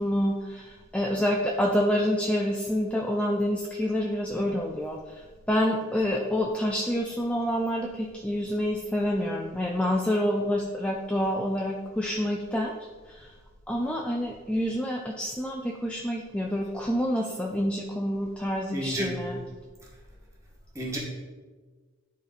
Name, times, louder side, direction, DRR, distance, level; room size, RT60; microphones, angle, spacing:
voice 1, 0.0-5.0 5.5-12.7 13.1-13.3 13.7-19.4, equal, 5° left, 0 dB, 0.5 m, -27 dB
voice 2, 18.7-19.3 20.7-21.0, right 1 dB, 15° right, -5 dB, 1.9 m, -31 dB
11.5 x 4.3 x 4.1 m, 1.4 s
head